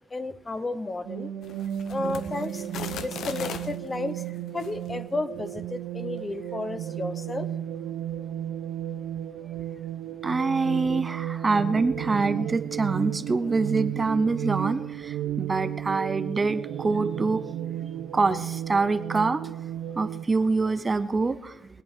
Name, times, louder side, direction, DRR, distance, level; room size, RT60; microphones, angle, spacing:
voice 1, 0.1-1.3 1.9-4.2 4.5-7.5, left 2 dB, 25° left, 12 dB, 0.9 m, -32 dB
sound 1, 1.1-20.2, right 11 dB, 90° right, 0.7 m, -33 dB
sound 2, 1.4-3.8 4.5-4.7, left 7 dB, 70° left, 0.9 m, -38 dB
voice 2, 10.2-17.4 18.1-19.5 20.0-21.6, right 3 dB, 25° right, 11 dB, 0.6 m, -25 dB
22.0 x 8.6 x 4.5 m, 0.92 s
cardioid pair, 90°, 0 cm